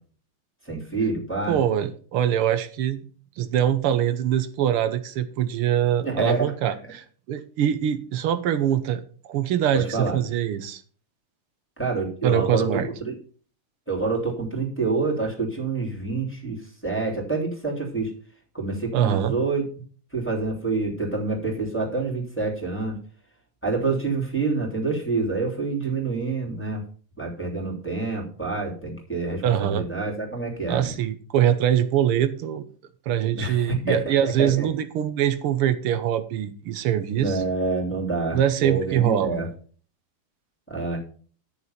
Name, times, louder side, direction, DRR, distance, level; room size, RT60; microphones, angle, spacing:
voice 1, 0.7-1.6 6.0-6.4 9.7-10.2 11.8-13.1 13.9-16.6 16.8-18.1 18.5-19.6 20.1-23.0 23.6-26.8 27.2-30.9 33.3-34.7 37.2-39.5 40.7-41.0, right 3 dB, 5° left, 0 dB, 3.0 m, -27 dB
voice 2, 1.5-3.0 3.4-9.0 9.3-10.8 12.2-12.9 18.9-19.3 29.4-29.8 30.7-32.6 33.1-37.4 38.3-39.4, right 10 dB, 85° right, 10 dB, 1.8 m, -23 dB
10.5 x 6.8 x 5.6 m, 0.43 s
omnidirectional pair, 2.4 m